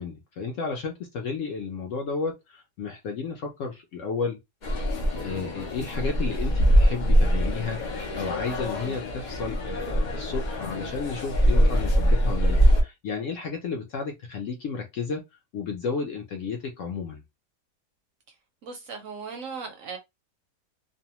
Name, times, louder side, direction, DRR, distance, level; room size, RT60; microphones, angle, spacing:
voice 1, 0.0-4.4 5.1-15.2 15.5-17.2, left 5 dB, 65° left, 0.8 m, -32 dB
sound 1, 4.6-12.8, equal, 85° left, 0.4 m, -23 dB
voice 2, 18.6-20.0, right 5 dB, 70° right, 0.8 m, -37 dB
2.6 x 2.1 x 2.9 m
omnidirectional pair, 1.7 m